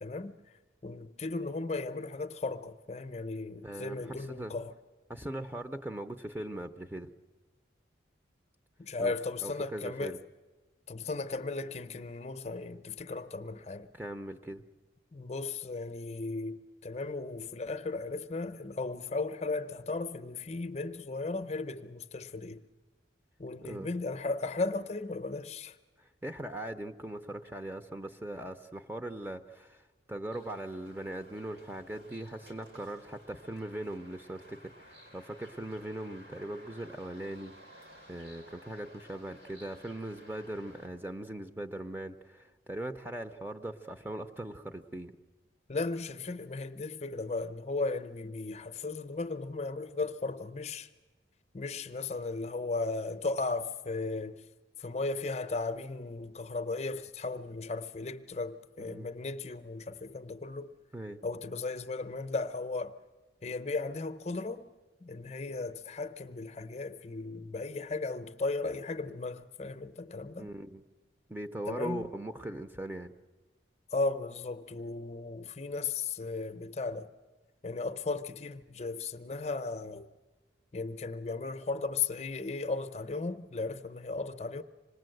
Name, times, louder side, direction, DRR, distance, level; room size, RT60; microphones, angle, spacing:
voice 1, 0.0-0.5 0.8-4.7 8.8-10.2 10.9-13.9 15.1-22.6 23.4-25.8 45.7-50.9 51.5-54.4 54.8-60.7 61.2-63.0 63.4-64.7 65.0-70.5 71.7-72.1 73.9-77.1 77.6-80.1 80.7-84.6, left 3 dB, 35° left, 0.7 m, -36 dB
voice 2, 3.6-4.6 5.1-7.1 9.0-9.1 9.4-10.2 13.9-14.6 23.6-23.9 26.2-29.8 30.1-37.5 38.1-45.1 58.8-59.1 60.9-61.2 70.4-70.8 71.3-73.1, right 1 dB, 10° right, 0.7 m, -40 dB
sound 1, 30.3-40.9, equal, 70° right, 3.9 m, -55 dB
26.0 x 19.5 x 7.8 m
head